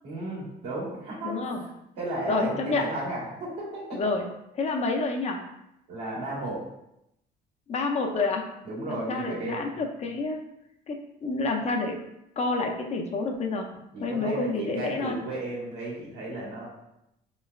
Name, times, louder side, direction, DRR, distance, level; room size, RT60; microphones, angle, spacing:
voice 1, 0.0-1.7 2.0-4.0 5.9-6.6 8.6-9.7 13.9-16.7, right 2 dB, 85° right, -5 dB, 1.4 m, -34 dB
voice 2, 1.2-1.6 2.3-2.9 3.9-4.3 4.5-5.4 7.7-8.4 8.9-10.4 10.9-12.0 12.4-13.7 14.0-15.2, left 3 dB, 40° left, 3 dB, 0.5 m, -28 dB
3.1 x 3.1 x 2.3 m, 0.84 s
cardioid pair, 110°, 17 cm